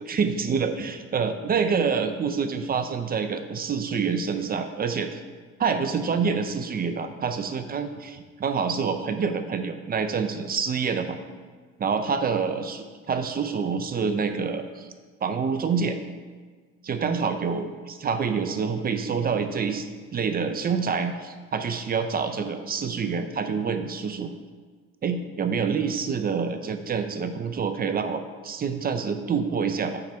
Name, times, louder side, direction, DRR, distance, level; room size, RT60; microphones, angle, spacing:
voice 1, 0.1-5.2 5.6-11.2 11.8-14.9 15.2-16.0 16.8-24.3 25.0-30.0, right 5 dB, 30° right, 8 dB, 0.5 m, -27 dB
6.4 x 6.0 x 4.4 m, 1.5 s
cardioid pair, 115°, 30 cm